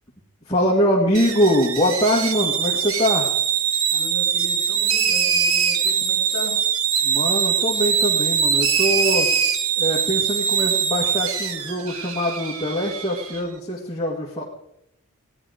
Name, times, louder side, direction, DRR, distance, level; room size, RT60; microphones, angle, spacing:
voice 1, 0.5-3.3 7.0-9.3 9.8-14.4, equal, 20° left, -4 dB, 1.9 m, -23 dB
sound 1, 1.1-13.4, right 7 dB, 75° right, 1.2 m, -22 dB
voice 2, 3.9-6.6, left 2 dB, 50° left, 3 dB, 2.7 m, -36 dB
17.5 x 11.0 x 5.1 m, 0.78 s
head